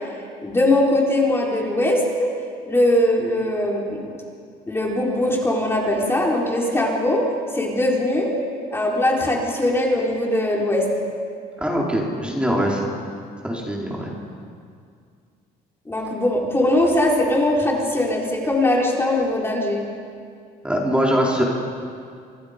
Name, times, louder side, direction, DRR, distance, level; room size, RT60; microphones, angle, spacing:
voice 1, 0.4-2.3 2.7-4.1 4.7-7.3 7.5-8.3 8.7-10.9 15.9-19.8, left 1 dB, 15° left, -2 dB, 4.2 m, -21 dB
voice 2, 11.6-12.9 13.4-14.1 20.6-21.4, equal, 5° right, -3 dB, 3.9 m, -22 dB
26.5 x 25.0 x 5.2 m, 2.3 s
cardioid pair, 110°, 17 cm